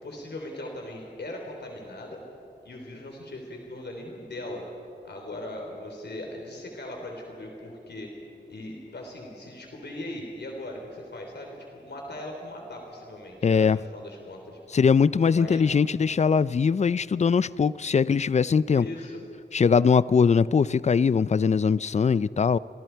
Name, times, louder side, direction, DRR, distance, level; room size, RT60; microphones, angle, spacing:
voice 1, 0.0-2.2 2.7-4.6 5.0-8.1 8.5-14.6 15.3-15.7 18.7-19.2, left 1 dB, 65° left, 1 dB, 3.6 m, -39 dB
voice 2, 13.4-13.8 14.7-18.9 19.5-22.6, left 6 dB, 40° left, 18 dB, 0.4 m, -21 dB
30.0 x 24.0 x 4.6 m, 2.5 s
wide cardioid pair, 105°, 19 cm